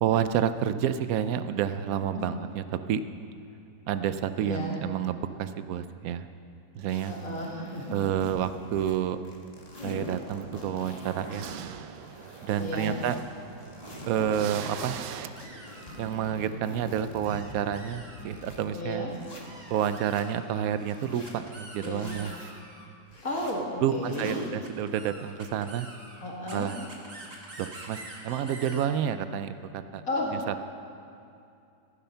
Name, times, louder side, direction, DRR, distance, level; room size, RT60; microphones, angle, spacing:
voice 1, 0.0-3.0 3.9-6.3 6.7-7.1 7.9-9.2 9.8-11.5 12.4-13.2 14.1-15.0 16.0-19.0 19.7-22.6 23.8-25.9 26.5-26.8 27.6-30.0 30.5-30.7, right 9 dB, 70° right, 11 dB, 0.8 m, -29 dB
voice 2, 4.4-4.8 7.0-7.8 12.6-13.0 18.7-19.1 21.8-22.1 23.2-24.5 26.2-26.7 30.1-30.4, left 1 dB, 45° left, -3 dB, 2.3 m, -33 dB
sound 1, 6.9-9.0 9.2-11.5 11.9-13.2 13.6-14.9 15.4-18.6 19.1-20.2 20.7-21.4 21.9-22.5 23.1-23.5 24.0-24.5, left 1 dB, 25° left, 1.4 m, -43 dB
sound 2, 9.8-15.3, right 9 dB, 90° right, 1.4 m, -43 dB
sound 3, 13.8-14.1 14.9-15.0 15.3-16.5 17.2-18.8 19.4-22.9 24.6-28.9, right 2 dB, 35° right, 2.0 m, -47 dB
15.0 x 11.0 x 5.7 m, 2.6 s
omnidirectional pair, 2.1 m